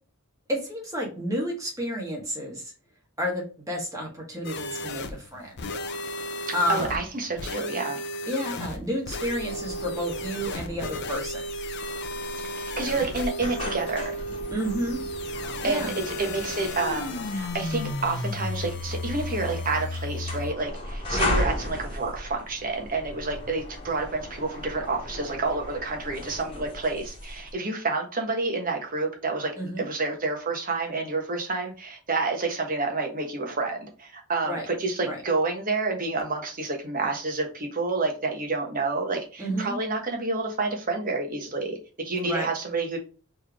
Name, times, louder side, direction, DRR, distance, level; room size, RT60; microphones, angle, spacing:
voice 1, 0.5-2.6 3.2-5.5 6.5-7.0 8.3-11.4 14.5-15.0 15.6-15.9 29.6-29.9 34.4-34.7 35.0-35.2 39.4-39.8 42.2-42.5, equal, 15° right, -2 dB, 1.7 m, -30 dB
sound 1, 4.4-20.5, left 1 dB, 55° left, 0.6 m, -34 dB
voice 2, 6.7-8.0 12.5-14.2 15.6-29.5 29.8-43.0, right 3 dB, 40° right, 2 dB, 1.2 m, -29 dB
sound 2, 9.2-27.5, left 1 dB, 25° left, 1.4 m, -36 dB
4.4 x 3.3 x 3.5 m, 0.36 s
head